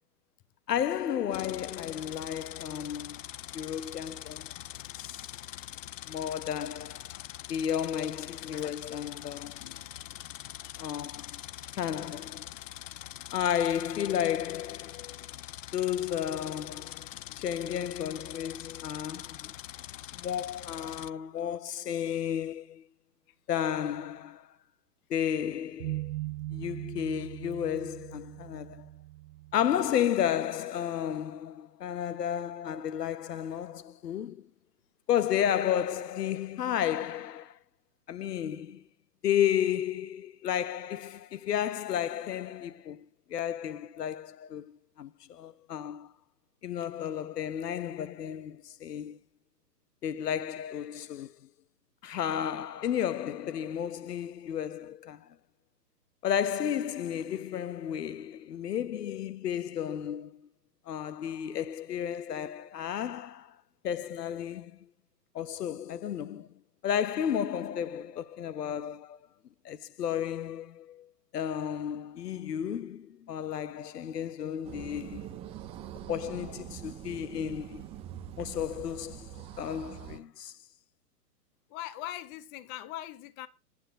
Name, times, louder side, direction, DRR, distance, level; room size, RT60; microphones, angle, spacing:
voice 1, 0.7-3.2 3.5-4.5 5.0-5.2 6.1-7.1 7.5-9.6 10.8-11.4 11.7-12.5 13.3-15.3 15.7-19.5 20.1-22.8 23.5-24.5 25.1-26.1 26.5-28.9 29.5-34.5 35.1-37.6 38.1-38.8 39.2-43.0 43.3-46.1 46.6-49.2 50.0-51.4 52.0-55.3 56.2-60.4 60.9-63.5 63.8-64.9 65.3-66.5 66.8-69.2 69.6-71.1 71.3-75.4 76.1-77.8 78.4-80.5, left 9 dB, 70° left, 1.1 m, -32 dB
sound 1, 1.3-21.1, left 13 dB, 50° left, 0.6 m, -44 dB
voice 2, 10.6-11.0 81.7-83.5, left 13 dB, 20° left, 0.8 m, -42 dB
sound 2, 25.8-30.1, right 17 dB, 70° right, 0.5 m, -40 dB
sound 3, 74.6-80.2, right 11 dB, 10° right, 0.7 m, -43 dB
9.9 x 8.4 x 7.9 m
hypercardioid pair, 135°, 49 cm